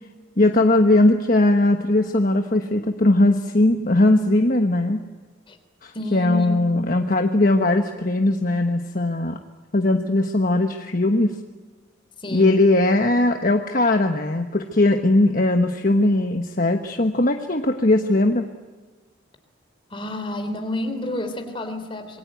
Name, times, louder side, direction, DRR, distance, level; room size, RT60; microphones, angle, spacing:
voice 1, 0.4-5.0 5.8-9.4 9.7-11.3 12.3-18.4, left 2 dB, 45° left, 5 dB, 1.3 m, -19 dB
voice 2, 5.9-6.8 12.2-12.6 19.9-22.2, left 1 dB, 25° left, 7 dB, 3.4 m, -29 dB
27.0 x 22.0 x 9.3 m, 1.3 s
head